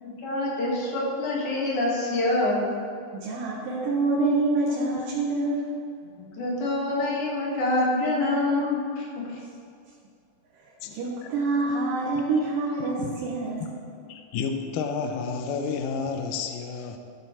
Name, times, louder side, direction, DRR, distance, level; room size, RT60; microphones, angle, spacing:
voice 1, 0.0-2.6 6.2-9.3, left 2 dB, 65° left, -4 dB, 3.0 m, -26 dB
voice 2, 3.1-5.7 10.9-13.7, right 3 dB, 80° right, -5 dB, 2.8 m, -26 dB
voice 3, 14.1-17.0, left 5 dB, 80° left, 5 dB, 2.2 m, -30 dB
13.5 x 6.0 x 4.3 m, 2.4 s
omnidirectional pair, 3.9 m